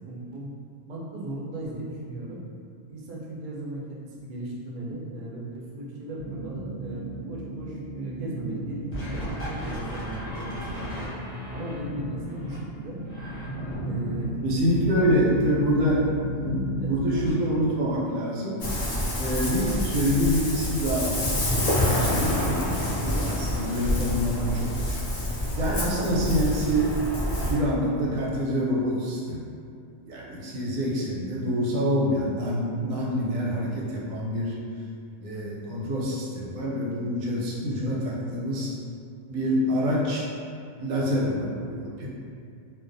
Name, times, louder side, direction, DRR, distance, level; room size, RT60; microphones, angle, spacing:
voice 1, 0.1-0.5 0.9-2.4 2.9-11.0 11.5-13.0 13.8-14.4 14.9-15.6 16.8-17.6 24.3-24.5 30.9-31.2 37.8-38.0, right 1 dB, 70° right, -4 dB, 0.4 m, -37 dB
sound 1, 6.2-17.3, equal, 35° left, 0.8 m, -34 dB
voice 2, 14.4-16.0 16.3-18.7 19.2-27.0 27.5-29.5 30.1-34.6 35.2-38.8 39.3-40.3 40.8-42.1, equal, 90° right, -4 dB, 1.0 m, -26 dB
Ocean, 18.6-27.5, left 1 dB, 70° left, 0.3 m, -27 dB
2.4 x 2.2 x 2.5 m, 2.4 s
omnidirectional pair, 1.3 m